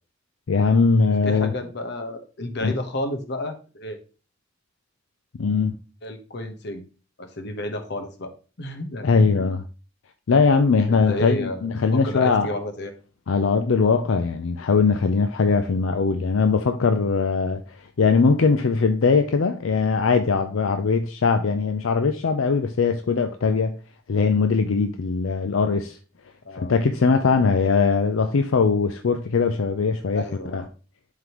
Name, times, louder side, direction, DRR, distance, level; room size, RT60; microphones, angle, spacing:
voice 1, 0.5-1.5 2.6-2.7 5.4-5.7 9.0-9.6 10.3-12.5 13.3-17.6 18.0-23.7 24.1-26.0 26.5-30.2 30.5-30.6, left 4 dB, 80° left, 0.5 m, -20 dB
voice 2, 1.2-4.0 6.0-6.8 7.2-8.3 8.6-9.5 10.9-12.9 26.4-26.7 30.1-30.7, left 1 dB, 60° left, 1.1 m, -31 dB
11.0 x 3.7 x 3.0 m
head